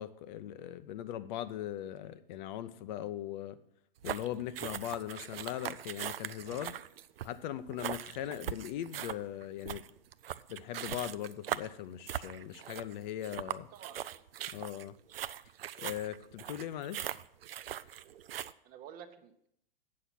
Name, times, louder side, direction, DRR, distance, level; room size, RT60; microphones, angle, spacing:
voice 1, 0.0-3.6 4.0-6.7 7.2-9.8 10.5-13.7 14.5-14.9 15.8-17.1, left 11 dB, 50° left, 0.8 m, -40 dB
sound 1, 4.0-18.5, right 11 dB, 80° right, 0.5 m, -41 dB
voice 2, 13.7-14.2 18.6-19.5, right 9 dB, 30° right, 0.9 m, -50 dB
8.6 x 6.7 x 5.9 m
hypercardioid pair, 115°, 29 cm